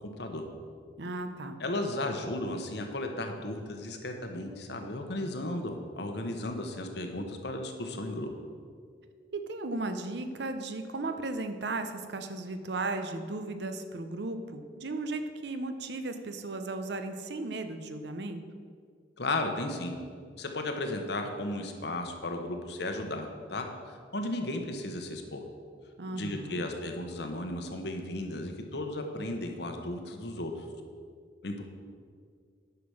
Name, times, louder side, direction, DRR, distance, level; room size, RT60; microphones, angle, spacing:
voice 1, 1.0-1.6 9.3-18.4 26.0-26.6, right 2 dB, 65° right, 8 dB, 0.7 m, -35 dB
voice 2, 1.6-8.3 19.2-19.9 20.4-25.4 26.1-30.7 31.4-31.6, left 1 dB, 60° left, 4 dB, 1.1 m, -35 dB
9.9 x 5.9 x 6.3 m, 2.1 s
head